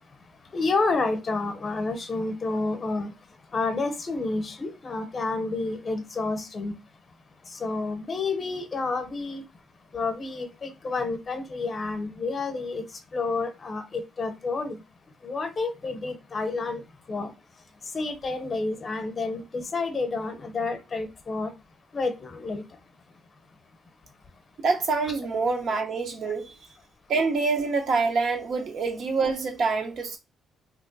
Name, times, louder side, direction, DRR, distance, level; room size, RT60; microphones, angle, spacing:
voice 1, 0.5-3.1 3.5-6.7 7.5-9.4 9.9-12.8 13.1-14.8 15.2-16.8 17.1-17.3 17.9-21.5 21.9-22.6, left 3 dB, 40° left, 0.8 m, -29 dB
voice 2, 24.6-26.5 27.1-30.2, right 4 dB, 65° right, 0.9 m, -26 dB
2.9 x 2.2 x 3.9 m
cardioid pair, 90°, 0 cm